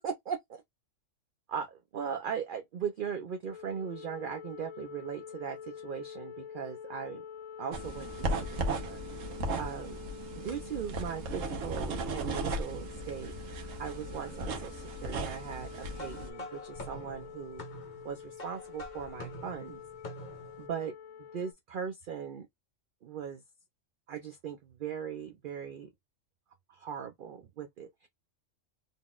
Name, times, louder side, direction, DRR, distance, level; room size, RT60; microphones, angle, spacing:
voice 1, 0.0-0.6 1.5-7.2 7.6-9.0 9.6-10.0 10.3-13.3 13.8-17.7 18.0-19.8 20.6-20.9 21.3-22.5 23.0-23.4 24.1-25.9 26.7-28.1, right 7 dB, 60° right, 0.5 m, -39 dB
sound 1, 3.5-21.5, left 8 dB, 80° left, 1.0 m, -47 dB
sound 2, 7.7-16.3, right 2 dB, 85° right, 1.3 m, -36 dB
sound 3, 15.9-20.7, left 1 dB, 40° left, 1.0 m, -46 dB
3.9 x 3.6 x 2.3 m
omnidirectional pair, 1.3 m